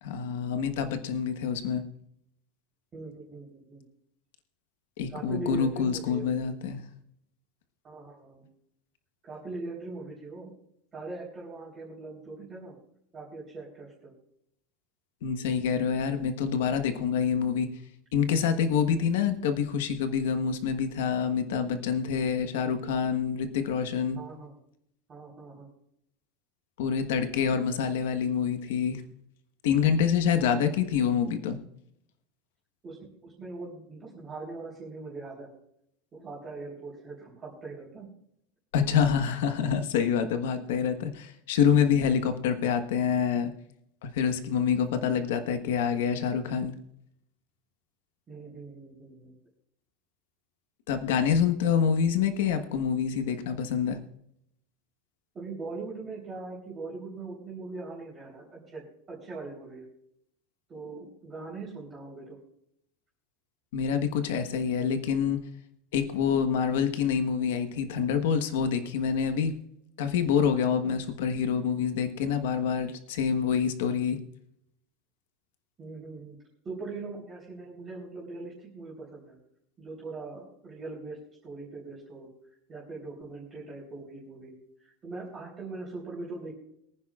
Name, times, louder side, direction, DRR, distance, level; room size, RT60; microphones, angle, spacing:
voice 1, 0.0-1.8 5.0-6.8 15.2-17.7 18.1-24.2 26.8-29.0 29.6-31.6 38.7-43.5 44.0-46.7 50.9-54.0 63.7-65.4 65.9-69.5 70.0-74.2, left 7 dB, 75° left, 7 dB, 1.3 m, -26 dB
voice 2, 2.9-3.8 5.1-6.4 7.8-8.4 9.2-10.5 10.9-12.8 13.1-14.1 24.2-24.5 25.1-25.7 31.5-31.7 32.8-33.0 33.2-35.5 36.1-38.1 48.3-49.3 55.3-58.8 59.1-59.9 60.7-62.4 70.8-70.9 75.8-76.4 76.6-79.4 79.8-82.3 82.7-84.5 84.8-86.5, right 3 dB, 15° right, -5 dB, 3.8 m, -41 dB
23.5 x 10.0 x 2.5 m, 0.73 s
supercardioid pair, 170°, 0 cm